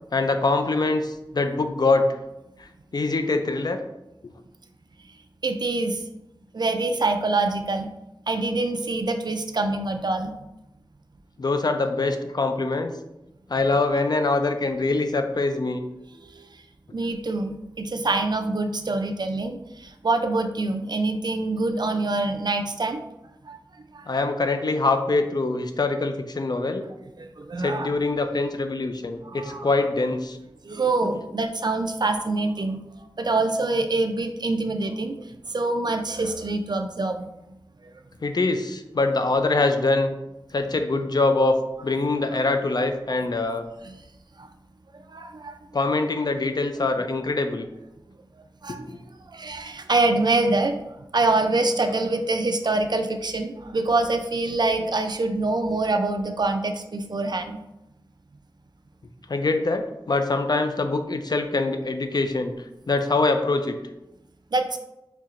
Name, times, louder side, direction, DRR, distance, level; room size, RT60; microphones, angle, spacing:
voice 1, 0.1-2.2 2.6-3.8 11.4-12.9 13.5-15.8 24.1-26.9 27.6-30.4 38.2-40.1 40.5-41.6 41.8-43.7 45.7-47.7 48.7-49.0 59.3-62.5 62.9-63.8, left 3 dB, 55° left, 7 dB, 0.4 m, -24 dB
voice 2, 5.4-6.0 6.5-7.9 8.3-10.3 16.3-16.5 16.9-23.0 23.5-23.6 23.9-24.1 27.2-27.9 29.2-29.7 30.6-32.9 33.2-37.3 37.8-37.9 42.3-42.4 43.9-44.0 44.4-44.5 45.1-45.7 48.6-48.8 49.3-50.8 51.1-57.6 64.5-64.8, right 2 dB, 55° right, 6 dB, 0.4 m, -25 dB
4.3 x 2.8 x 2.5 m, 0.92 s
wide cardioid pair, 65°, 9 cm